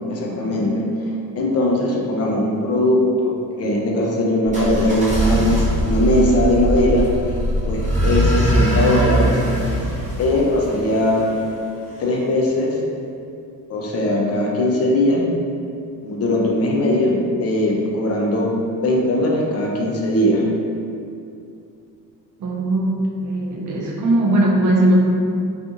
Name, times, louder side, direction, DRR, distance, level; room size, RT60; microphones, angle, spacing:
voice 1, 0.1-0.9 1.3-7.1 7.6-9.4 10.2-11.3 12.0-12.8 13.7-15.4 16.0-20.5, left 1 dB, 45° left, -2 dB, 0.5 m, -19 dB
sound 1, 4.5-11.4, right 1 dB, 20° right, 0.7 m, -21 dB
voice 2, 22.4-25.0, right 1 dB, 60° right, -2 dB, 0.6 m, -19 dB
2.5 x 2.4 x 2.7 m, 2.5 s
cardioid pair, 115°, 35 cm